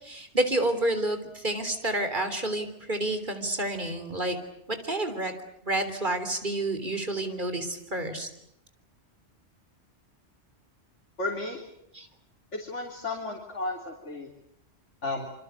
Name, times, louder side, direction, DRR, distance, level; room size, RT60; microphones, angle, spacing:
voice 1, 0.0-4.4 4.7-5.3 5.6-8.3 11.9-12.1, right 1 dB, 45° right, 8 dB, 3.7 m, -29 dB
voice 2, 11.2-11.6 12.5-14.3 15.0-15.3, left 2 dB, 80° left, 1 dB, 3.6 m, -33 dB
27.5 x 25.0 x 8.2 m, 0.77 s
omnidirectional pair, 1.2 m